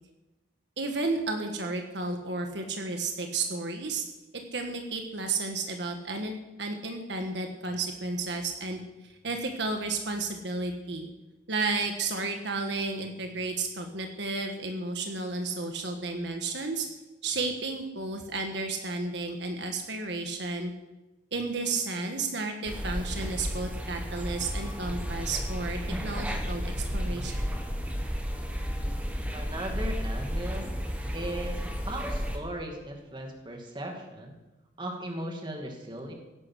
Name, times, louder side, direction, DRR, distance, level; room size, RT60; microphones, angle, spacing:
voice 1, 0.8-4.0 4.5-8.8 9.2-11.1 11.5-16.9 17.2-20.7 21.3-27.5, right 3 dB, 70° right, 4 dB, 1.5 m, -32 dB
sound 1, 22.6-32.4, equal, 10° right, 1.4 m, -32 dB
voice 2, 29.3-30.7 31.1-31.6 31.9-34.3 34.8-36.1, right 1 dB, 25° right, 2 dB, 2.4 m, -37 dB
16.5 x 11.0 x 6.3 m, 1.0 s
head